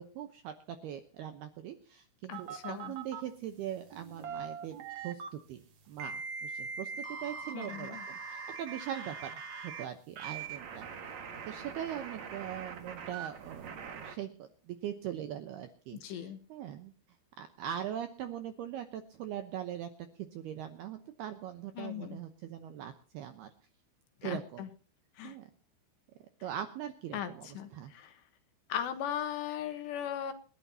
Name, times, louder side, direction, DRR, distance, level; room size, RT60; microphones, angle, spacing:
voice 1, 0.0-4.8 5.0-10.9 11.5-16.9 17.4-19.9 20.2-23.5 24.2-24.7 25.2-25.4 26.4-27.9, right 10 dB, 75° right, 8 dB, 2.4 m, -41 dB
voice 2, 2.3-2.9 7.5-8.0 16.0-16.4 21.8-22.2 24.2-24.7 25.2-25.3 27.1-28.2 28.7-30.3, left 10 dB, 70° left, 8 dB, 3.1 m, -38 dB
sound 1, 2.3-3.2 3.9-5.3 6.0-9.9 10.2-14.2, right 6 dB, 55° right, 2.0 m, -42 dB
28.5 x 11.5 x 2.8 m, 0.39 s
omnidirectional pair, 5.8 m